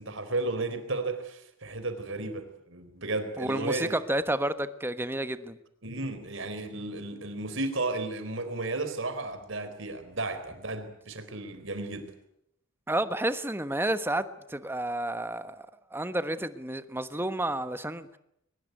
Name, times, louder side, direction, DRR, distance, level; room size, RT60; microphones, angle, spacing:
voice 1, 0.0-3.9 5.8-12.1, right 2 dB, 65° right, 4.0 m, -33 dB
voice 2, 3.4-5.6 12.9-18.2, right 1 dB, 10° right, 1.2 m, -31 dB
23.0 x 20.5 x 9.4 m
head